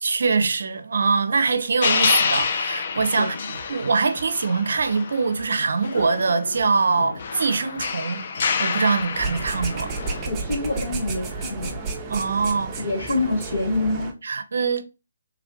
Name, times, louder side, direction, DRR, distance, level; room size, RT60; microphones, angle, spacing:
voice 1, 0.0-8.3 8.6-9.9 12.1-13.2 14.2-14.8, right 4 dB, 65° right, 0.5 m, -23 dB
sound 1, 1.8-5.5 5.8-10.3, left 5 dB, 50° left, 0.4 m, -27 dB
sound 2, 2.3-13.8, equal, 10° left, 1.1 m, -49 dB
voice 2, 3.1-3.5 10.3-11.9 12.8-14.1, left 2 dB, 80° left, 1.3 m, -26 dB
sound 3, 9.1-14.1, right 4 dB, 20° right, 0.6 m, -32 dB
3.3 x 2.4 x 3.5 m
hypercardioid pair, 150°, 0 cm